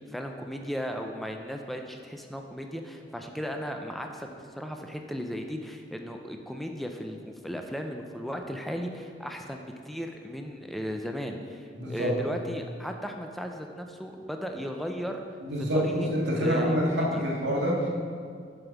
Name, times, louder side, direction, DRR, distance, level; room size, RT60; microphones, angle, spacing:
voice 1, 0.1-15.2 15.7-16.1 16.4-17.2, equal, ahead, 3 dB, 0.4 m, -36 dB
voice 2, 11.7-12.1 15.4-17.9, equal, 90° right, -4 dB, 1.7 m, -26 dB
7.0 x 5.3 x 5.8 m, 2.2 s
head